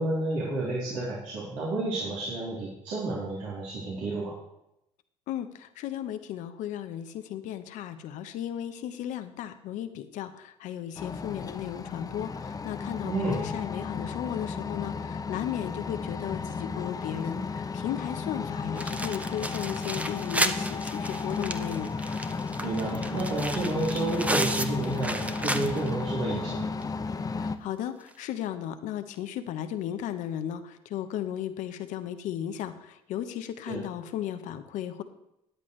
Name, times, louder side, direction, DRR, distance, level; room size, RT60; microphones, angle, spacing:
voice 1, 0.0-4.3 13.0-13.4 22.6-26.7 33.7-33.8, right 2 dB, 75° right, -8 dB, 3.4 m, -30 dB
voice 2, 5.3-22.0 27.4-35.0, left 11 dB, 75° left, 9 dB, 1.0 m, -35 dB
sound 1, 11.0-27.6, left 4 dB, 30° left, 0.8 m, -34 dB
sound 2, 18.8-26.0 26.4-26.5 26.8-26.9 28.1-28.2, right 1 dB, 10° right, 0.9 m, -33 dB
13.5 x 9.8 x 3.3 m, 0.84 s
supercardioid pair, 75°, 13 cm